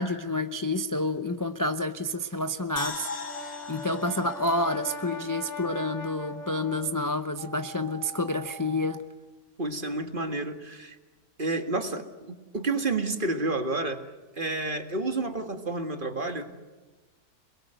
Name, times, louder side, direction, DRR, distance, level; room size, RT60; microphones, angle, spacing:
voice 1, 0.0-3.1 3.7-9.0, left 1 dB, 20° left, 0.6 m, -29 dB
sound 1, 2.8-6.0 6.3-6.4, left 4 dB, 45° left, 1.8 m, -40 dB
Brass instrument, 3.0-7.2, left 2 dB, 70° left, 2.4 m, -40 dB
sound 2, 7.4-9.0, right 7 dB, 80° right, 2.3 m, -44 dB
voice 2, 9.6-11.0 11.4-14.1 14.3-16.5, right 2 dB, 35° right, 2.0 m, -30 dB
28.0 x 21.5 x 8.0 m
omnidirectional pair, 1.6 m